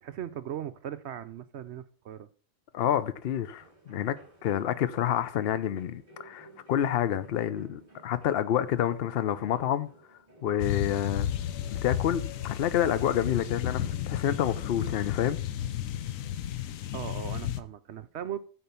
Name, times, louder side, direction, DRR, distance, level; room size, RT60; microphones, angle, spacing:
voice 1, 0.0-2.3 16.9-18.4, right 10 dB, 65° right, 0.8 m, -38 dB
voice 2, 2.7-4.2 4.4-9.9 10.4-11.3 11.7-15.4, left 10 dB, 55° left, 0.8 m, -28 dB
sound 1, 3.6-16.4, right 3 dB, 30° right, 2.9 m, -56 dB
sound 2, 10.6-17.6, left 11 dB, 80° left, 1.1 m, -33 dB
9.0 x 4.4 x 6.8 m
omnidirectional pair, 1.4 m